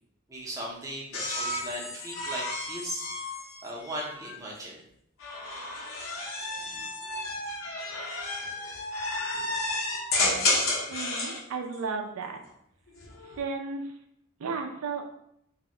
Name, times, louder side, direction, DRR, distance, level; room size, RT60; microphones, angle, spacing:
voice 1, 0.3-3.3 3.6-4.8, equal, 15° right, -4 dB, 0.5 m, -38 dB
sound 1, 1.1-4.4 5.2-11.4 12.9-13.4, left 2 dB, 80° left, 0.6 m, -32 dB
voice 2, 10.9-12.4 13.2-14.0 14.4-15.0, right 4 dB, 85° right, 4 dB, 0.4 m, -34 dB
2.1 x 2.0 x 3.6 m, 0.74 s
head